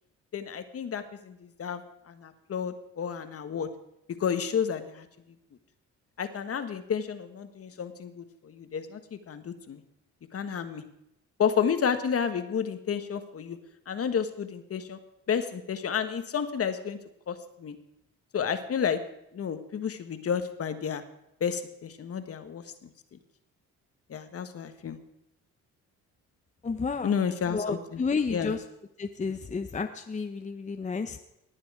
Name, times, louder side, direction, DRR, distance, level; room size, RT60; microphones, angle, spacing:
voice 1, 0.3-1.8 2.1-3.7 4.2-5.1 6.2-9.8 10.3-10.8 11.4-13.6 13.9-15.0 15.3-17.0 17.3-17.7 18.3-19.0 19.3-21.0 21.4-22.9 24.1-25.0 27.0-28.0 28.3-28.5, left 7 dB, 50° left, 9 dB, 1.4 m, -31 dB
voice 2, 26.6-27.1 27.5-28.6 29.0-31.2, left 4 dB, 25° left, 7 dB, 0.8 m, -31 dB
19.0 x 8.9 x 4.9 m, 0.83 s
cardioid pair, 90°, 30 cm